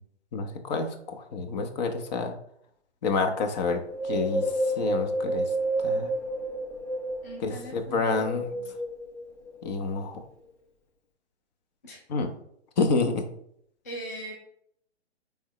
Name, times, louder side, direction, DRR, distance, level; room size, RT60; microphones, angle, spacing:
voice 1, 0.3-2.3 3.0-3.8 4.1-4.4 4.8-5.5 5.8-6.1 7.4-8.5 9.6-10.2 12.1-12.3 12.8-13.2, left 4 dB, 40° left, 5 dB, 1.0 m, -28 dB
Wind, 3.9-7.4 8.0-9.2 9.8-9.9, right 1 dB, 85° left, 2.2 m, -29 dB
voice 2, 7.2-8.8 11.8-12.0 13.8-14.3, right 1 dB, 15° left, -2 dB, 0.3 m, -41 dB
9.4 x 3.6 x 3.2 m, 0.71 s
hypercardioid pair, 145°, 34 cm